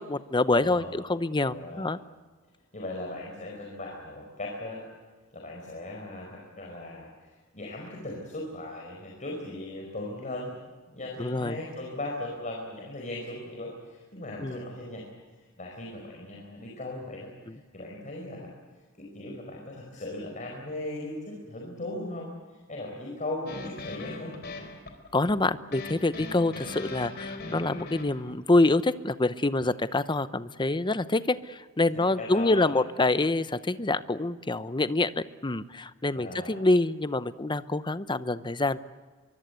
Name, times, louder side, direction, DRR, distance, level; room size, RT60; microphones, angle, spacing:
voice 1, 0.0-2.0 11.2-11.6 14.4-14.6 25.1-38.8, left 2 dB, 25° left, 14 dB, 0.8 m, -26 dB
voice 2, 0.6-1.0 1.5-1.9 2.7-4.8 5.3-10.5 10.9-15.0 15.4-18.5 19.0-24.3 31.9-32.8 36.1-36.7, left 1 dB, 40° left, -1 dB, 4.9 m, -38 dB
sound 1, 23.5-28.3, left 2 dB, 55° left, 4.2 m, -39 dB
24.5 x 23.5 x 8.2 m, 1.4 s
head